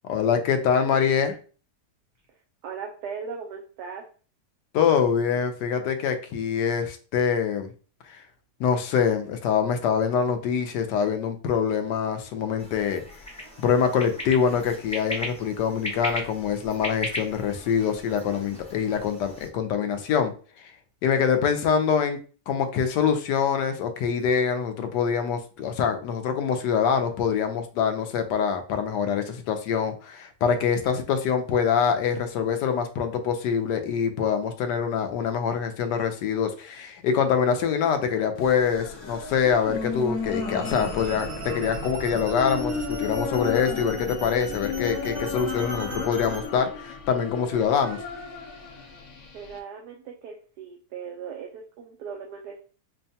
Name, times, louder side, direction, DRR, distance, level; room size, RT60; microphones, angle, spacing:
voice 1, 0.0-1.3 4.7-7.7 8.1-8.2 8.6-13.0 13.6-20.3 21.0-22.2 22.5-48.0, left 7 dB, 85° left, 7 dB, 1.3 m, -24 dB
voice 2, 2.3-4.0 49.3-52.6, right 6 dB, 75° right, 1 dB, 1.2 m, -38 dB
sound 1, 12.6-19.5, left 1 dB, 10° left, 0.3 m, -37 dB
sound 2, 38.4-49.6, left 4 dB, 65° left, 1.1 m, -34 dB
sound 3, 40.6-46.5, right 3 dB, 45° right, 1.3 m, -38 dB
5.4 x 2.2 x 2.7 m, 0.38 s
omnidirectional pair, 1.8 m